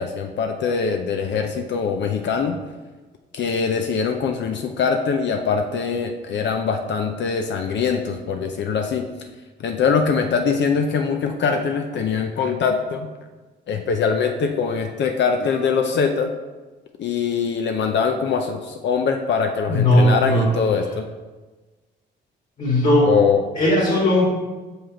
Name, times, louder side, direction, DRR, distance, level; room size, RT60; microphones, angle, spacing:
voice 1, 0.0-2.6 3.3-9.1 9.6-13.1 13.7-16.3 17.0-21.1 23.0-23.4, left 6 dB, 65° left, 4 dB, 0.7 m, -22 dB
voice 2, 19.7-20.7 22.6-23.1 23.5-24.2, left 1 dB, 45° left, -6 dB, 2.4 m, -17 dB
5.8 x 5.5 x 4.9 m, 1.2 s
cardioid pair, 90°, 20 cm